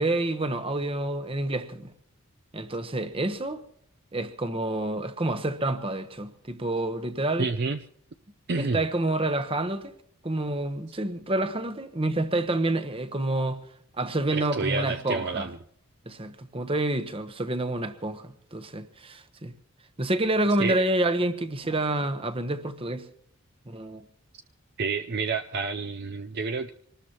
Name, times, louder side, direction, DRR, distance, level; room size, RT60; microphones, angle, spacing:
voice 1, 0.0-1.9 2.5-3.6 4.1-7.5 8.6-9.9 10.2-13.6 14.0-15.5 16.1-19.5 20.0-23.1 23.7-24.0, right 2 dB, 25° right, 1.1 m, -28 dB
voice 2, 7.4-7.8 8.5-8.8 14.3-15.6 20.6-20.8 24.8-26.7, right 4 dB, 50° right, 0.5 m, -29 dB
25.0 x 19.5 x 3.0 m
head